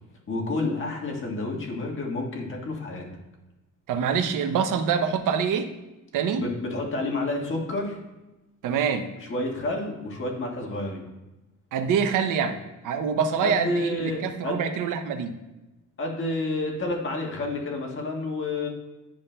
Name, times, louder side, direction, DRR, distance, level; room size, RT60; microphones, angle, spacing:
voice 1, 0.3-3.1 6.4-8.0 9.2-11.0 13.4-14.6 16.0-18.7, left 2 dB, 40° left, -1 dB, 1.5 m, -29 dB
voice 2, 3.9-5.7 6.1-6.5 8.6-9.1 11.7-15.4, right 6 dB, 75° right, 8 dB, 0.7 m, -25 dB
10.5 x 5.3 x 2.2 m, 1.0 s
cardioid pair, 120°, 32 cm